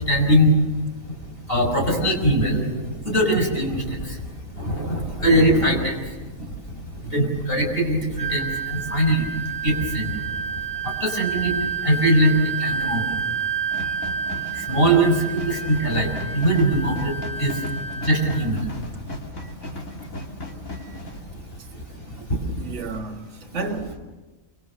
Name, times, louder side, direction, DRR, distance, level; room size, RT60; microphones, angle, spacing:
voice 1, 0.1-0.5 1.5-2.7 3.0-4.0 4.6-6.0 7.1-9.2 9.6-10.1 11.0-11.5 11.8-12.3 12.6-13.0 14.7-16.1 16.3-17.1 17.4-17.5 18.0-18.6 23.5-23.6, right 1 dB, 40° left, 6.3 m, -20 dB
Wind instrument woodwind instrument, 8.2-18.5, right 6 dB, 5° right, 1.6 m, -30 dB
sound 1, 13.7-21.2, left 1 dB, 65° left, 3.2 m, -36 dB
voice 2, 22.6-24.0, right 3 dB, 55° right, 1.7 m, -31 dB
28.0 x 26.0 x 6.7 m
omnidirectional pair, 1.5 m